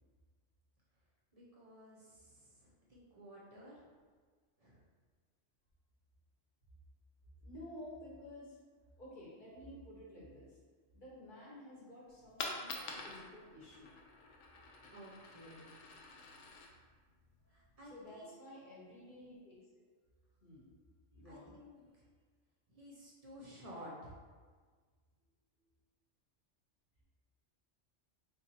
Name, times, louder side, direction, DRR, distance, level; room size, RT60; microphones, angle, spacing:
voice 1, 1.3-3.9 4.6-4.8 14.9-15.6 17.5-18.3 21.2-22.1 22.7-24.2, equal, 45° right, -5 dB, 0.5 m, -54 dB
voice 2, 7.4-8.6 9.0-10.6 10.9-13.9 17.4-17.5 17.8-19.6 20.4-20.6 21.1-21.6, left 1 dB, 45° left, -7 dB, 0.9 m, -52 dB
Coin (dropping), 12.1-18.1, left 3 dB, 75° left, 0.9 m, -48 dB
4.0 x 2.6 x 2.8 m, 1.5 s
omnidirectional pair, 1.3 m